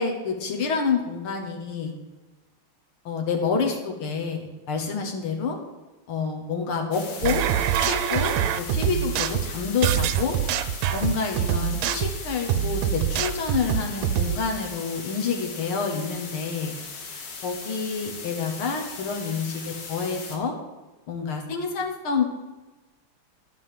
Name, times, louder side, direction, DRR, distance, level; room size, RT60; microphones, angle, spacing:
voice 1, 0.0-1.9 3.1-5.6 6.1-7.4 7.8-10.4 10.9-16.7 17.4-20.5 21.1-22.2, left 5 dB, 85° left, 2 dB, 2.1 m, -28 dB
sound 1, 6.9-20.4, left 4 dB, 50° left, 1.6 m, -39 dB
sound 2, 7.2-14.4, right 10 dB, 75° right, 1.3 m, -25 dB
11.0 x 5.2 x 7.6 m, 1.2 s
omnidirectional pair, 2.3 m